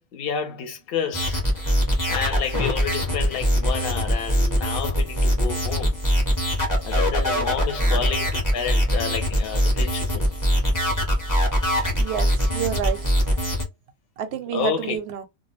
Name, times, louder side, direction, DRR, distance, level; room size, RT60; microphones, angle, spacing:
voice 1, 0.1-1.4 2.1-6.0 6.8-10.3 14.5-15.0, left 7 dB, 55° left, 0.8 m, -30 dB
sound 1, 1.1-13.6, equal, 20° left, 0.6 m, -22 dB
voice 2, 12.0-13.0 14.2-15.2, right 9 dB, 65° right, 0.7 m, -29 dB
2.3 x 2.1 x 3.1 m
omnidirectional pair, 1.4 m